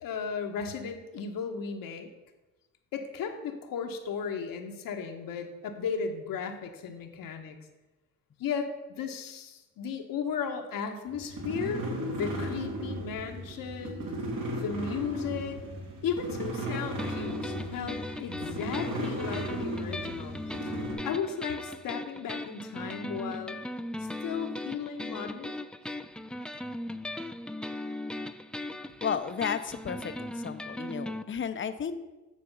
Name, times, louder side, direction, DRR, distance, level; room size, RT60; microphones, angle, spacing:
voice 1, 0.0-2.1 2.9-7.6 8.4-11.8 12.1-14.1 14.5-15.6 16.0-20.8 21.0-23.6 24.2-25.5, left 6 dB, 65° left, 5 dB, 1.2 m, -35 dB
sound 1, 11.1-20.9, right 1 dB, 60° right, 2.3 m, -36 dB
sound 2, 17.0-31.2, left 1 dB, 5° left, 0.3 m, -38 dB
voice 2, 29.0-31.9, left 7 dB, 35° left, 11 dB, 0.7 m, -33 dB
9.6 x 4.6 x 5.4 m, 1.1 s
supercardioid pair, 70°, 36 cm